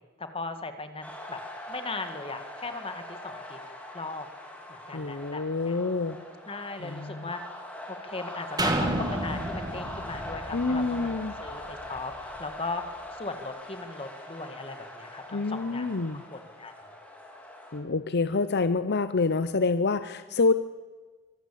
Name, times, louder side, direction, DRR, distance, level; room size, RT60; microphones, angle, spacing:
voice 1, 0.2-1.4 1.7-3.6 3.9-4.3 4.7-5.8 6.5-7.4 7.9-11.1 11.4-12.8 13.1-15.9 16.3-16.7, left 3 dB, 25° left, 8 dB, 1.8 m, -38 dB
sound 1, 1.0-17.8, left 1 dB, 5° left, 3.8 m, -42 dB
voice 2, 4.9-6.2 6.8-7.3 10.5-11.4 15.3-16.2 17.7-20.5, left 3 dB, 50° left, 12 dB, 0.7 m, -27 dB
sound 2, 8.6-12.4 12.9-13.0, right 1 dB, 20° right, 2.3 m, -32 dB
24.5 x 17.0 x 8.5 m, 1.4 s
head